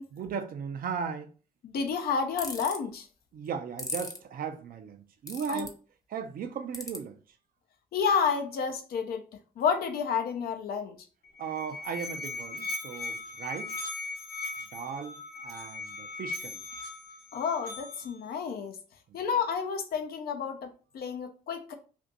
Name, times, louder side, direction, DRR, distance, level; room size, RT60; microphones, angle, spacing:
voice 1, 0.1-1.3 3.3-5.8 6.1-7.2 11.4-13.8 14.7-16.6, right 6 dB, 50° right, 0.6 m, -37 dB
voice 2, 1.6-3.1 5.5-5.7 7.9-9.3 9.6-11.0 17.3-18.8 19.1-21.7, left 6 dB, 55° left, 0.7 m, -30 dB
sound 1, 2.4-2.8 3.8-4.2 5.3-5.7 6.7-7.0, left 2 dB, 20° left, 0.7 m, -36 dB
Musical instrument, 11.2-18.2, left 3 dB, 90° left, 0.6 m, -39 dB
2.6 x 2.5 x 3.9 m
hypercardioid pair, 50°, 19 cm